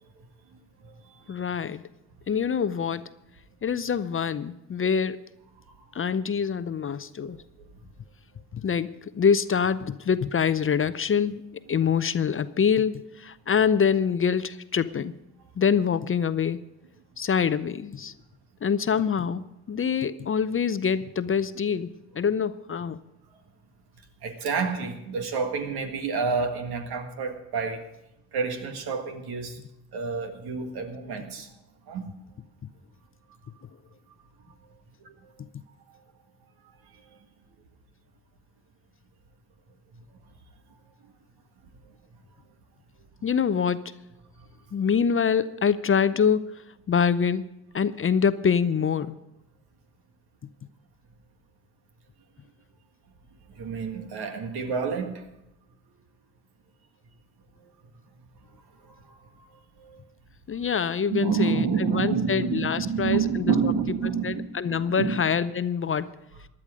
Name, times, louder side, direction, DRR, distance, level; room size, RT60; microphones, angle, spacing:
voice 1, 0.0-1.6 5.7-6.0 7.2-7.3 7.6-7.7 23.3-23.4 24.2-27.9 28.3-29.6 29.9-31.5 31.9-32.1 35.0-35.3 35.9-36.0 36.8-37.2 39.9-40.0 41.0-41.1 44.4-44.5 53.5-55.3 58.8-60.0 61.1-65.2, right 5 dB, 70° right, 6 dB, 1.8 m, -30 dB
voice 2, 1.3-1.8 2.3-3.1 3.6-5.2 5.9-7.4 8.5-11.4 11.7-15.1 15.6-16.6 17.2-18.1 18.6-21.9 22.1-23.0 43.2-43.9 44.7-46.6 46.9-47.4 47.7-49.1 60.5-61.7 61.9-63.5 64.2-66.1, left 7 dB, 30° left, 15 dB, 0.6 m, -25 dB
16.0 x 11.0 x 5.0 m, 0.88 s
hypercardioid pair, 50°, 40 cm